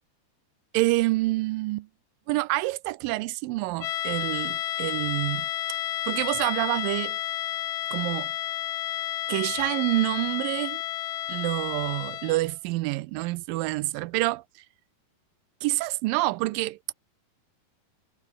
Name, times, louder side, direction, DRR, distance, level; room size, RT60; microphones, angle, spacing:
voice 1, 0.7-1.9 2.3-5.5 6.1-7.2 7.9-8.3 9.3-10.8 11.3-14.4 15.6-16.8, right 20 dB, 85° right, 2.3 m, -27 dB
sound 1, 3.8-12.5, left 13 dB, 75° left, 1.5 m, -31 dB
omnidirectional pair, 4.1 m